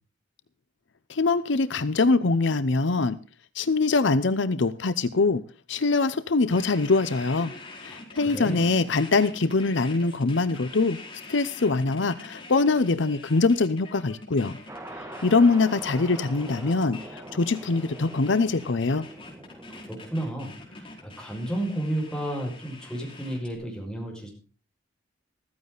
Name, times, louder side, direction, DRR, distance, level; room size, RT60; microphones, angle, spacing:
voice 1, 1.1-3.2 3.5-5.4 5.7-7.5 7.8-11.0 11.3-14.6 15.2-19.0, left 3 dB, 70° left, 14 dB, 0.7 m, -23 dB
sound 1, 6.5-23.5, left 3 dB, 30° left, 4.7 m, -45 dB
voice 2, 8.3-8.7 19.7-24.3, right 1 dB, 5° left, -1 dB, 5.7 m, -32 dB
sound 2, 14.7-22.2, right 1 dB, 15° right, 2.3 m, -44 dB
14.5 x 14.5 x 4.0 m, 0.37 s
head